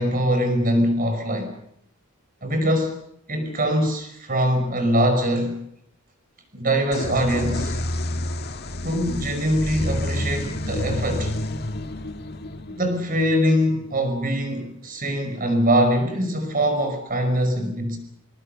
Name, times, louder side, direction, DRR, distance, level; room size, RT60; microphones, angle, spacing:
voice 1, 0.0-1.5 2.4-3.0 3.3-5.6 6.5-7.8 8.8-11.3 12.7-18.0, equal, 40° right, 7 dB, 5.3 m, -23 dB
sound 1, 6.9-14.5, left 1 dB, 45° left, 1.6 m, -29 dB
24.5 x 21.5 x 6.7 m, 0.71 s
head